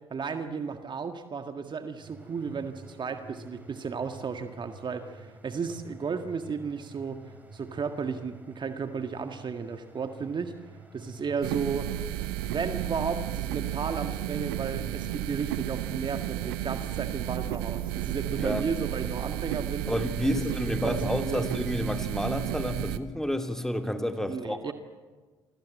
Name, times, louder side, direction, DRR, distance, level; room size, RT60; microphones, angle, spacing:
voice 1, 0.1-10.6 10.9-11.9 12.4-19.9 20.2-20.4 20.8-21.0 21.2-21.5 24.3-24.7, right 5 dB, 35° right, 1.8 m, -34 dB
sound 1, 2.0-19.1, right 2 dB, 10° right, 6.9 m, -49 dB
sound 2, 11.4-23.0, right 14 dB, 75° right, 1.1 m, -33 dB
voice 2, 18.3-18.6 19.9-24.6, left 1 dB, 5° left, 2.8 m, -30 dB
29.5 x 24.5 x 7.6 m
figure-of-eight pair, 50°, 13 cm